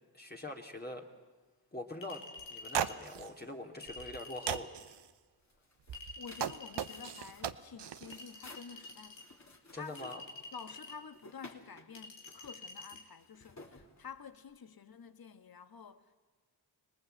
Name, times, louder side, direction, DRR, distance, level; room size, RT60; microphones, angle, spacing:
voice 1, 0.1-1.1 1.7-2.2 2.5-4.7 9.7-10.2, left 2 dB, 20° left, 2.5 m, -43 dB
Chink clink, 2.0-3.0 3.8-4.7 5.9-7.2 8.1-9.3 9.9-11.0 11.9-13.0, left 3 dB, 90° left, 3.0 m, -49 dB
sound 1, 2.4-2.5 2.7-3.3 3.9-4.2 4.5-5.0 5.9-8.2, right 9 dB, 70° right, 0.9 m, -37 dB
sound 2, 5.4-14.5, left 2 dB, 40° left, 3.4 m, -57 dB
voice 2, 6.2-9.3 9.7-10.1 10.5-16.1, left 6 dB, 55° left, 1.5 m, -50 dB
25.5 x 19.0 x 7.9 m
cardioid pair, 50°, 43 cm